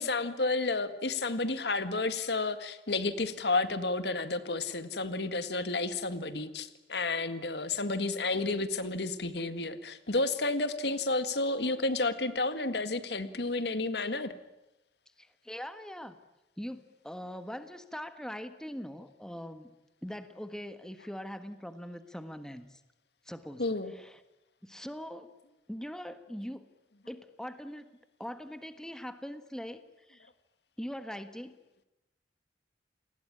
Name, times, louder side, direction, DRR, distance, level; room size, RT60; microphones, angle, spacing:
voice 1, 0.0-14.3 23.6-23.9, left 3 dB, 70° left, 11 dB, 1.9 m, -31 dB
voice 2, 15.2-16.2 16.6-19.7 20.0-22.8 23.2-24.2 24.6-25.3 25.7-26.6 27.1-30.3 30.8-31.5, equal, 5° left, 10 dB, 1.4 m, -42 dB
29.5 x 20.0 x 9.9 m, 0.94 s
head